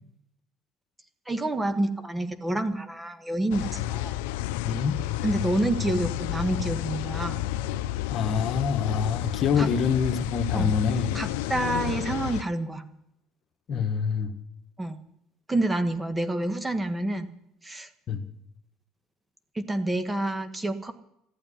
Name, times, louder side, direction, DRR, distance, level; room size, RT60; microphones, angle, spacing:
voice 1, 1.3-4.2 5.2-7.4 9.6-9.7 10.5-10.7 11.1-12.9 14.8-15.0 15.5-17.3 17.6-17.9 19.5-20.9, right 1 dB, 15° right, 8 dB, 1.5 m, -28 dB
sound 1, 3.5-12.4, left 14 dB, 90° left, 0.6 m, -31 dB
voice 2, 4.6-5.0 8.1-11.1 13.7-14.3 18.1-18.2, left 6 dB, 50° left, 7 dB, 1.5 m, -25 dB
14.5 x 8.9 x 9.8 m, 0.79 s
supercardioid pair, 95°, 0 cm